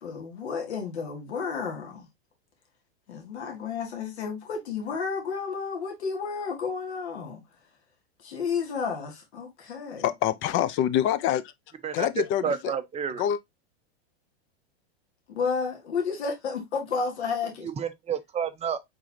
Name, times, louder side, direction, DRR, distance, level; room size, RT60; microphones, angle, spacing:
voice 1, 0.0-2.1 3.1-7.4 8.2-10.1 15.3-17.7, left 5 dB, 90° left, 1.8 m, -31 dB
voice 2, 10.0-11.4 11.9-12.7 13.2-13.4, left 11 dB, 40° left, 0.6 m, -25 dB
voice 3, 11.8-13.2 17.6-18.8, right 7 dB, 20° right, 0.7 m, -30 dB
4.8 x 3.8 x 2.8 m
hypercardioid pair, 115°, 32 cm